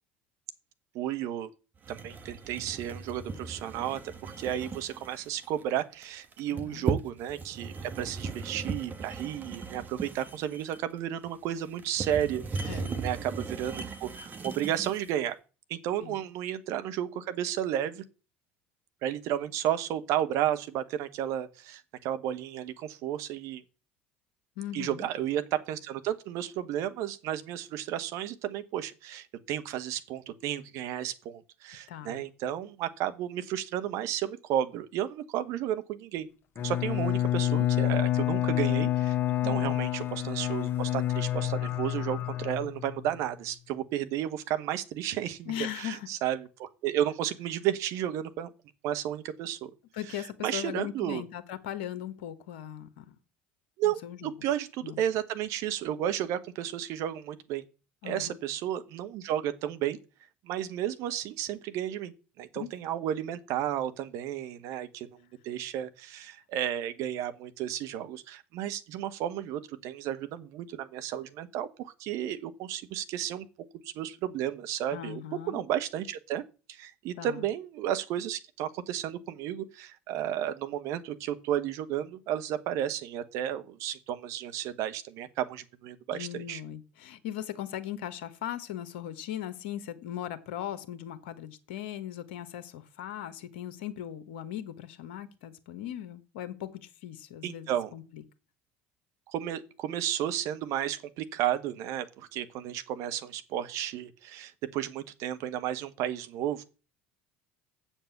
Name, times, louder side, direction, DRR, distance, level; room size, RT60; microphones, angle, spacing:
voice 1, 0.9-1.5 1.9-15.3 15.7-18.0 19.0-23.6 24.7-36.3 36.6-48.5 48.8-49.7 50.2-51.2 53.8-57.6 58.0-60.0 60.4-62.1 62.4-65.2 65.4-73.5 73.8-76.4 76.7-86.6 97.4-97.9 99.3-106.6, right 11 dB, 55° right, 1.1 m, -33 dB
sound 1, 1.8-15.2, right 4 dB, 30° right, 1.3 m, -37 dB
voice 2, 6.5-6.9 12.7-13.0 16.0-16.2 24.6-25.1 31.9-32.3 39.4-39.8 45.4-46.1 49.9-53.2 53.8-54.3 54.8-55.0 58.0-58.4 62.5-62.7 74.9-75.6 77.2-77.5 86.1-98.2, left 11 dB, 70° left, 1.1 m, -39 dB
Bowed string instrument, 36.6-43.2, left 13 dB, 40° left, 1.2 m, -28 dB
7.5 x 7.2 x 7.0 m
figure-of-eight pair, 65°, 6 cm